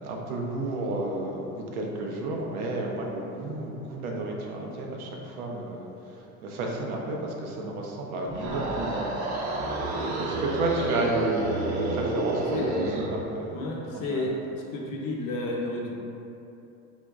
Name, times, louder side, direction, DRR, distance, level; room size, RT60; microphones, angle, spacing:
voice 1, 0.0-5.9 6.4-13.6 13.9-14.3, right 2 dB, 90° right, -1 dB, 0.7 m, -32 dB
sound 1, 8.2-13.2, right 2 dB, 45° right, 0.6 m, -29 dB
voice 2, 13.5-15.9, left 2 dB, 50° left, -2 dB, 0.7 m, -31 dB
3.9 x 2.9 x 2.3 m, 2.8 s
supercardioid pair, 105°, 42 cm